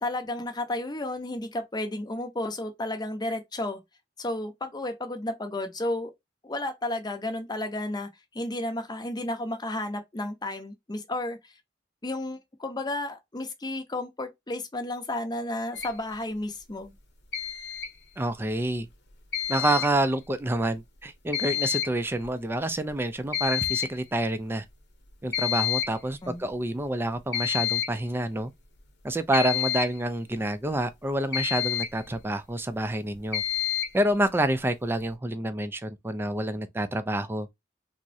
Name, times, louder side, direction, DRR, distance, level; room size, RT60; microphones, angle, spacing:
voice 1, 0.0-3.8 4.2-6.1 6.4-11.4 12.0-16.9 26.2-26.5, left 1 dB, 25° left, 0.6 m, -32 dB
sound 1, 15.7-15.9 17.3-17.9 19.3-19.9 21.3-21.9 22.2-22.3 22.9-23.0 23.3-23.9 25.3-25.9 27.3-28.0 29.3-30.0 31.3-32.0 33.3-34.0, left 11 dB, 65° left, 0.8 m, -29 dB
voice 2, 18.2-18.9 19.5-24.7 25.2-28.5 29.0-33.4 33.9-37.5, right 1 dB, 10° right, 0.3 m, -28 dB
3.5 x 2.0 x 2.6 m
head